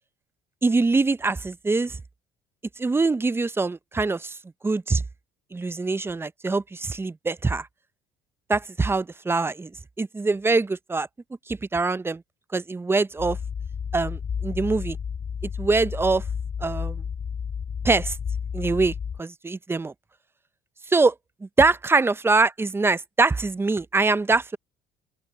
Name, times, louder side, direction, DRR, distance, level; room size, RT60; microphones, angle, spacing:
voice 1, 0.6-2.0 2.8-4.4 4.6-5.0 5.5-7.7 8.5-9.7 10.0-11.1 11.5-12.2 12.5-13.4 13.9-15.0 15.6-16.2 16.6-17.0 17.8-18.2 18.5-19.9 20.9-21.1 21.4-24.6, right 3 dB, 15° right, 0.6 m, -23 dB
sound 1, 13.2-19.2, left 7 dB, 40° left, 1.5 m, -31 dB
open air
supercardioid pair, 95°, 15 cm